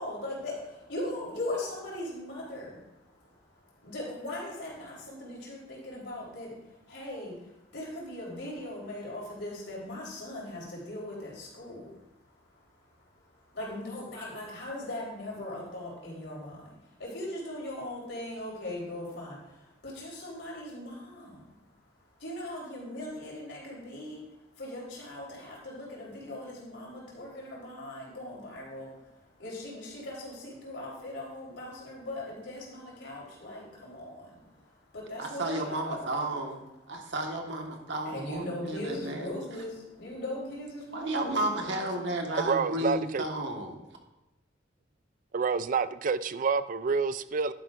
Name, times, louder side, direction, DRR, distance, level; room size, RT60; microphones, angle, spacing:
voice 1, 0.0-2.8 3.8-6.5 6.9-7.3 7.7-12.0 13.5-16.7 17.0-21.4 22.2-24.2 24.6-28.9 29.4-34.6 34.9-36.1 38.1-42.0, left 1 dB, 80° left, -4 dB, 3.9 m, -39 dB
voice 2, 35.2-36.6 36.9-39.3 40.9-43.8, right 1 dB, 75° right, 2 dB, 1.5 m, -33 dB
voice 3, 42.4-43.2 45.3-47.5, right 5 dB, 45° right, 14 dB, 0.4 m, -28 dB
11.5 x 9.8 x 2.5 m, 0.95 s
head